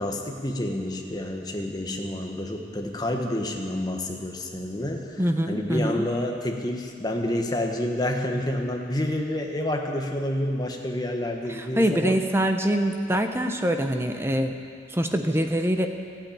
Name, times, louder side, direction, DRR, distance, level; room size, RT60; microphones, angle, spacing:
voice 1, 0.0-5.2 5.5-12.2, left 1 dB, 20° left, 2 dB, 1.2 m, -29 dB
voice 2, 5.2-6.1 11.5-14.6 14.9-15.9, equal, 15° right, 5 dB, 0.8 m, -24 dB
14.5 x 8.8 x 8.6 m, 2.3 s
head